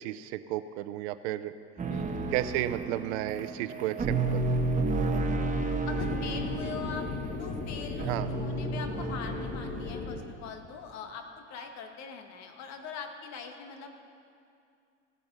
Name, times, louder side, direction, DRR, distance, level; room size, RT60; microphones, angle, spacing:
voice 1, 0.0-1.5 2.3-4.5 8.1-8.3, right 14 dB, 65° right, 13 dB, 0.7 m, -33 dB
sound 1, 1.8-10.0, right 3 dB, 20° right, 1.4 m, -32 dB
voice 2, 1.9-2.3 5.9-7.1 7.4-13.9, left 6 dB, 50° left, 5 dB, 1.6 m, -42 dB
sound 2, 5.9-10.2, left 4 dB, 30° left, 1.7 m, -36 dB
16.0 x 8.8 x 5.5 m, 2.5 s
hypercardioid pair, 95°, 35 cm